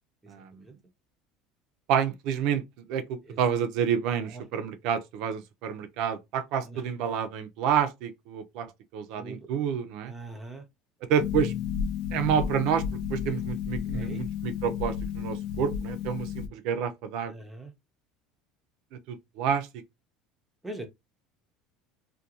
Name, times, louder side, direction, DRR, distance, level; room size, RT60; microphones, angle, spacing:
voice 1, 1.9-2.6 2.9-10.1 11.1-11.5 12.1-12.8 13.1-17.3 19.1-19.7, right 8 dB, 65° right, 0.5 m, -29 dB
voice 2, 10.0-10.6 13.9-14.2 17.2-17.7 20.6-20.9, right 2 dB, 10° right, 0.5 m, -41 dB
Harp, 11.2-16.5, left 8 dB, 65° left, 0.4 m, -32 dB
2.4 x 2.2 x 2.8 m
supercardioid pair, 130°, 0 cm